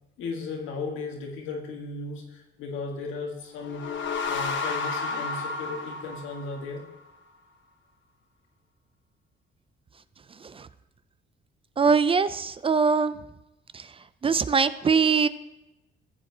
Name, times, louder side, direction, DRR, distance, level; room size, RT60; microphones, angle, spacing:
voice 1, 0.2-6.8, left 3 dB, 90° left, 1 dB, 1.6 m, -36 dB
sound 1, 3.5-7.0, left 4 dB, 70° left, 1.0 m, -32 dB
voice 2, 11.8-13.2 13.7-15.3, right 5 dB, 30° right, 15 dB, 0.4 m, -23 dB
15.0 x 7.7 x 2.8 m, 0.97 s
cardioid pair, 90°, 20 cm